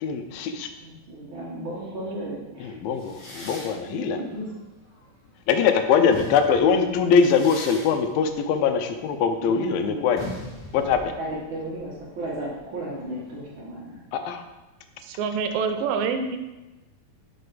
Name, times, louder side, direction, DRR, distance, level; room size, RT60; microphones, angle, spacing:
voice 1, 0.0-0.7 2.6-4.2 5.5-10.2 10.7-11.1 14.1-14.4, left 6 dB, 90° left, 7 dB, 2.4 m, -22 dB
voice 2, 0.8-2.8 3.8-4.5 9.4-10.0 11.2-14.0, right 1 dB, 60° right, -5 dB, 1.3 m, -34 dB
sound 1, 3.0-5.5 5.9-13.4, left 1 dB, 45° left, 1.4 m, -42 dB
voice 3, 15.0-16.4, right 5 dB, 80° right, 7 dB, 2.3 m, -26 dB
5.6 x 5.4 x 3.9 m, 1.1 s
omnidirectional pair, 4.1 m